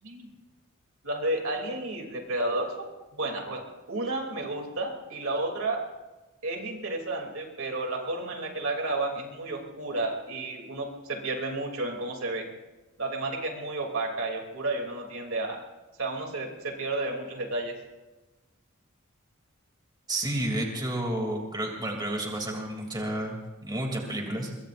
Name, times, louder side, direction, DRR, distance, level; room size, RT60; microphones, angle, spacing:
voice 1, 0.0-0.3 1.0-5.8 6.4-12.5 13.0-15.6 16.0-17.7, right 2 dB, 70° right, 2 dB, 3.0 m, -32 dB
voice 2, 20.1-24.5, right 1 dB, 20° right, 1 dB, 2.9 m, -31 dB
24.5 x 22.5 x 2.6 m, 1.1 s
head